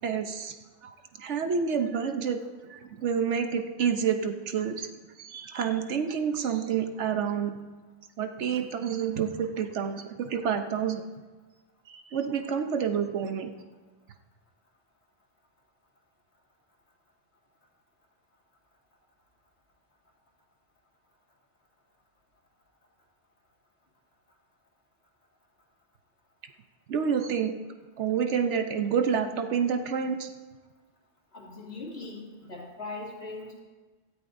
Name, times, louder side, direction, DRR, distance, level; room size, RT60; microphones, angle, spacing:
voice 1, 0.0-0.6 0.8-2.4 2.7-4.9 5.2-7.5 8.2-11.0 11.9-13.5 26.9-27.5 28.0-30.3, right 7 dB, 80° right, 6 dB, 1.1 m, -28 dB
voice 2, 31.3-33.6, left 3 dB, 65° left, -3 dB, 2.6 m, -40 dB
18.0 x 13.5 x 2.6 m, 1.3 s
omnidirectional pair, 1.2 m